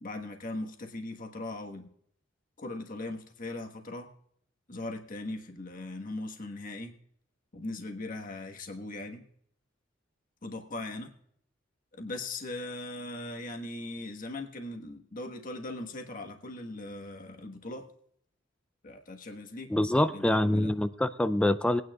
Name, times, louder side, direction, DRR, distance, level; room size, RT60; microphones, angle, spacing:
voice 1, 0.0-1.9 2.6-4.1 4.7-6.9 7.5-9.2 10.4-11.1 11.9-17.9 18.8-19.7 20.1-20.7, left 2 dB, 40° left, 3 dB, 1.4 m, -39 dB
voice 2, 19.7-21.8, left 1 dB, 5° left, 12 dB, 0.3 m, -25 dB
20.5 x 9.5 x 2.3 m, 0.65 s
head